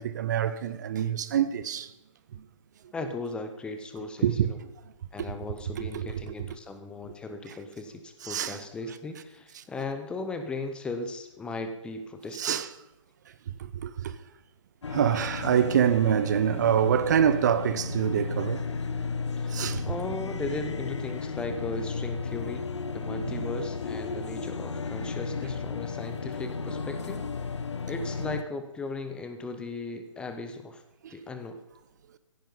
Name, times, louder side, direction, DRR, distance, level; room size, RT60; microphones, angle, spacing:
voice 1, 0.0-1.9 4.2-4.5 5.8-6.1 8.2-8.6 12.4-12.7 13.6-14.1 14.9-18.7 19.5-19.8 23.3-23.4 31.0-31.1, right 9 dB, 35° right, 0.7 m, -25 dB
voice 2, 2.9-4.6 5.1-12.6 19.3-22.7 22.9-27.6 27.8-30.8 31.1-31.6, left 3 dB, 5° left, 0.6 m, -37 dB
sound 1, 14.8-28.4, left 5 dB, 60° left, 0.9 m, -34 dB
16.0 x 10.0 x 5.3 m
figure-of-eight pair, 135°, 17 cm